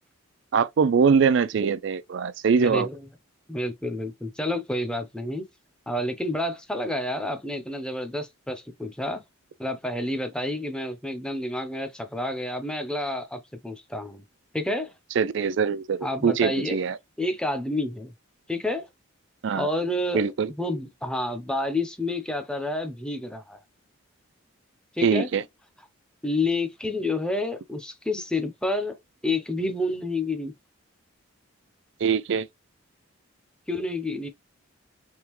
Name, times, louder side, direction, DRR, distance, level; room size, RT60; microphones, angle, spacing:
voice 1, 0.5-2.9 15.2-17.0 19.4-19.7 20.1-20.5 25.0-25.4 32.0-32.5, right 6 dB, 55° right, 0.3 m, -22 dB
voice 2, 2.6-3.0 3.5-5.4 5.9-9.2 9.6-14.2 14.5-14.9 16.0-16.8 17.2-18.1 18.5-18.9 19.5-20.2 20.6-23.6 24.9-25.3 26.2-28.9 29.2-30.5 33.7-34.3, left 1 dB, 5° left, 0.6 m, -29 dB
3.6 x 3.3 x 3.0 m
head